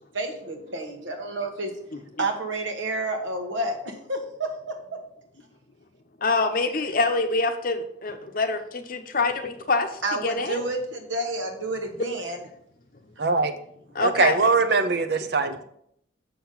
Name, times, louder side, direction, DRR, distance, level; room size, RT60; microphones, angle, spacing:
voice 1, 0.1-1.7 2.2-5.0 10.0-12.4, right 2 dB, 80° right, 4 dB, 1.3 m, -30 dB
voice 2, 1.9-2.2 6.2-10.6 13.9-14.5 15.5-15.6, left 3 dB, 45° left, 7 dB, 0.7 m, -26 dB
voice 3, 13.2-13.5 14.0-15.6, right 4 dB, 55° right, 9 dB, 0.6 m, -21 dB
6.9 x 6.1 x 3.9 m, 0.69 s
head